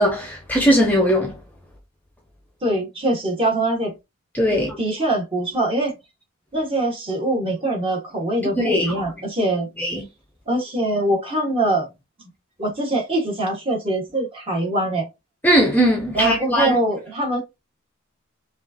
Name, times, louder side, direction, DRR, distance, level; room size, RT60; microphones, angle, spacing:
voice 1, 0.0-1.3 4.3-4.8 8.6-8.9 9.8-10.0 15.4-16.8, equal, 10° left, 0.6 m, -19 dB
voice 2, 2.6-3.9 4.5-5.9 6.5-9.7 10.5-11.9 12.6-15.1 16.1-17.4, right 1 dB, 25° right, 1.5 m, -23 dB
5.1 x 2.5 x 2.7 m
head